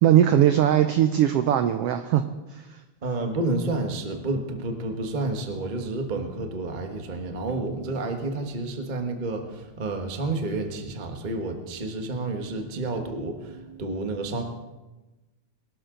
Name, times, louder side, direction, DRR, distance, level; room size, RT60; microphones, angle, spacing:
voice 1, 0.0-2.2 2.5-2.8, right 11 dB, 85° right, 8 dB, 1.3 m, -20 dB
voice 2, 3.0-14.4, right 2 dB, 55° right, 4 dB, 0.5 m, -30 dB
22.0 x 12.5 x 3.8 m, 1.1 s
omnidirectional pair, 3.4 m